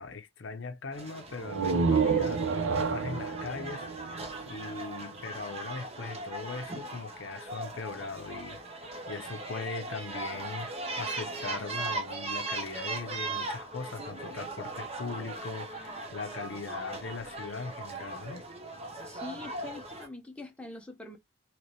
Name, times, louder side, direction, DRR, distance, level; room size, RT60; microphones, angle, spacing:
voice 1, 0.0-8.6 9.1-18.4, left 4 dB, 65° left, 0.6 m, -40 dB
sound 1, 0.9-20.1, right 2 dB, 30° right, 0.7 m, -39 dB
sound 2, 1.4-5.1, right 5 dB, 70° right, 0.5 m, -29 dB
voice 2, 19.1-21.2, left 2 dB, 5° left, 0.6 m, -44 dB
3.2 x 3.0 x 2.7 m
head